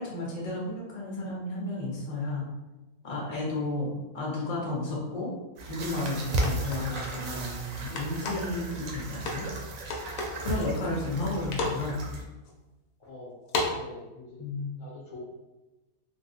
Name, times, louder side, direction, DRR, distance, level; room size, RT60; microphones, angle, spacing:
voice 1, 0.0-2.5 3.0-5.3 5.7-9.5 10.4-12.1 14.4-14.7, left 2 dB, 35° left, -4 dB, 0.8 m, -32 dB
sound 1, 5.6-12.2, right 2 dB, 70° right, 0.9 m, -35 dB
sound 2, 6.4-7.1 8.0-8.5 9.3-9.6 9.9-10.4 10.9-11.3 11.5-11.9 12.5-12.6 13.5-13.8, left 3 dB, 80° left, 1.1 m, -31 dB
voice 2, 13.0-14.4 14.8-15.2, left 2 dB, 65° left, -6 dB, 0.9 m, -45 dB
3.5 x 2.3 x 2.7 m, 1.1 s
omnidirectional pair, 1.6 m